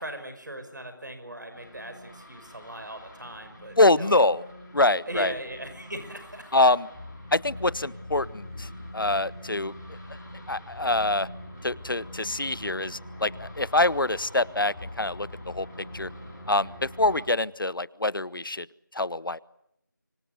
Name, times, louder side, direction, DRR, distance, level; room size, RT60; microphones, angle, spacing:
voice 1, 0.0-4.2 5.1-6.5, right 1 dB, 60° right, 8 dB, 5.9 m, -39 dB
sound 1, 1.5-17.2, left 1 dB, 5° left, 3.7 m, -43 dB
voice 2, 3.8-4.4 4.7-5.3 6.5-6.9 7.3-8.7 8.9-9.7 10.5-11.3 11.6-15.7 15.9-16.1 16.5-18.7 18.9-19.4, left 2 dB, 90° left, 21 dB, 0.9 m, -25 dB
25.5 x 23.5 x 8.1 m, 0.78 s
figure-of-eight pair, 180°, 11 cm